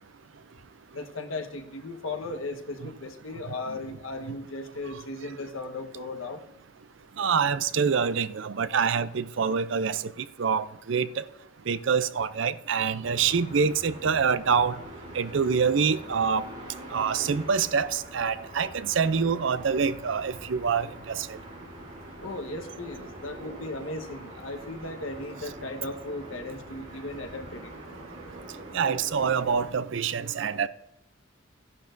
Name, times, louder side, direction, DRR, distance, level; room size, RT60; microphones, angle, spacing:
voice 1, 0.9-6.4 22.2-27.7, left 2 dB, 90° left, 1.2 m, -36 dB
voice 2, 7.2-10.0 10.4-11.2 11.7-14.8 15.1-16.4 16.9-21.3 28.7-30.7, right 6 dB, 65° right, 0.5 m, -26 dB
sound 1, 13.0-29.7, right 1 dB, 35° right, 3.4 m, -44 dB
14.0 x 11.0 x 2.6 m
head